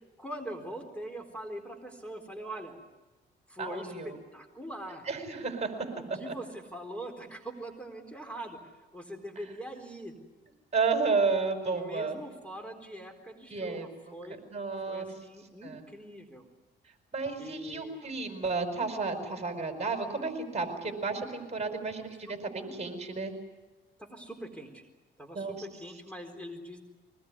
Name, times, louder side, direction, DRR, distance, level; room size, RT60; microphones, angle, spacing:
voice 1, 0.2-2.8 3.5-5.1 5.9-10.1 11.7-14.4 14.9-16.5 17.4-18.0 24.0-24.8 25.2-26.8, right 1 dB, 5° left, 4 dB, 4.2 m, -42 dB
voice 2, 3.6-4.2 5.1-5.7 6.3-6.4 10.7-12.2 13.5-14.1 14.5-15.1 15.6-15.8 17.1-23.3 25.3-25.6, right 4 dB, 35° right, 6 dB, 5.0 m, -32 dB
23.5 x 20.0 x 9.8 m, 1.2 s
cardioid pair, 90°, 20 cm